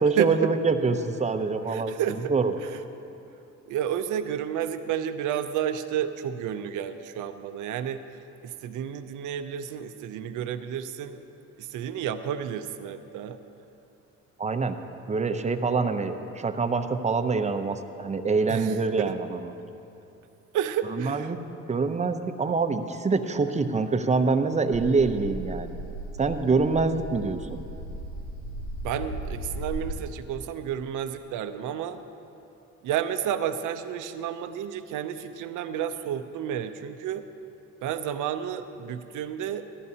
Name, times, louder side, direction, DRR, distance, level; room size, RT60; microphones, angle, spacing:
voice 1, 0.0-1.9 2.3-2.5 14.4-14.8 15.1-19.4 20.9-21.4 21.7-25.8 26.2-27.6, right 4 dB, 25° right, 8 dB, 0.6 m, -25 dB
voice 2, 1.7-2.3 3.7-8.0 8.4-11.2 11.6-13.4 18.5-19.1 20.5-21.3 28.8-32.0 32.8-37.2 37.8-39.7, right 9 dB, 80° right, 9 dB, 0.6 m, -31 dB
sound 1, 24.7-29.9, right 1 dB, 75° left, 1.1 m, -36 dB
15.0 x 12.0 x 2.8 m, 2.8 s
cardioid pair, 90°, 30 cm